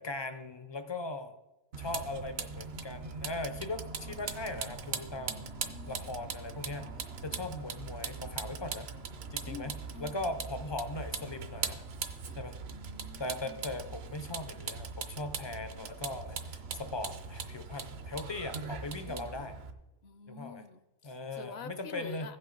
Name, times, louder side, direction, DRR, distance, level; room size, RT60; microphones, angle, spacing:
voice 1, 0.0-1.4 1.8-5.5 5.9-6.9 7.2-8.9 9.3-11.8 12.3-12.6 13.2-19.5 20.3-20.6 21.0-22.3, left 2 dB, 40° left, 9 dB, 0.4 m, -39 dB
Vehicle, 1.7-19.7, right 5 dB, 65° right, 0.9 m, -40 dB
voice 2, 5.3-6.1 9.5-10.3 12.7-13.9 15.5-15.9 19.1-19.5 20.0-22.4, left 6 dB, 65° left, 10 dB, 0.8 m, -48 dB
15.5 x 5.5 x 3.8 m, 1.0 s
omnidirectional pair, 1.2 m